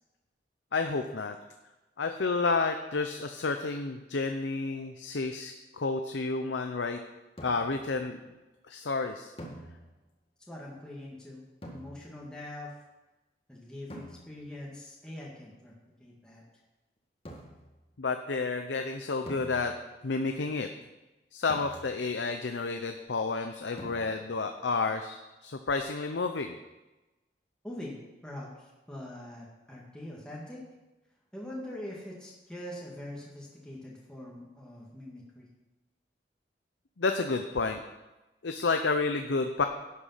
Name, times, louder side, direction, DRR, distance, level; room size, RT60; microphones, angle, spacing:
voice 1, 0.7-1.4 2.0-7.0 7.4-8.2 8.7-9.3 18.0-19.8 20.0-20.7 21.3-26.6 37.0-37.8 38.4-39.6, left 4 dB, 90° left, 6 dB, 0.7 m, -30 dB
sound 1, 7.4-7.9 9.4-10.2 11.6-12.4 13.9-14.6 17.3-17.8 19.3-20.1 21.5-22.3 23.8-24.5, equal, 30° left, 1.7 m, -47 dB
voice 2, 10.5-11.4 11.7-12.7 13.5-16.4 27.6-30.6 31.3-35.5, left 1 dB, 5° left, -4 dB, 1.8 m, -43 dB
11.5 x 8.4 x 5.7 m, 1.1 s
head